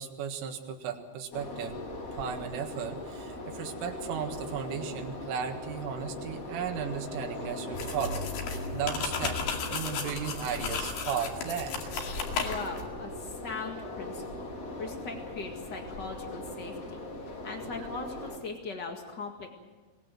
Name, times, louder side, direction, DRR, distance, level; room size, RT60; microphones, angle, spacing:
voice 1, 0.0-1.8 2.1-9.4 9.7-11.9, right 8 dB, 85° right, 4 dB, 4.2 m, -35 dB
sound 1, 1.3-18.4, left 2 dB, 40° left, 2.6 m, -40 dB
sound 2, 7.7-12.9, left 5 dB, 65° left, 4.2 m, -34 dB
voice 2, 12.4-14.5 14.8-19.5, left 4 dB, 80° left, 3 dB, 0.9 m, -40 dB
23.5 x 19.5 x 7.7 m, 1.3 s
omnidirectional pair, 5.6 m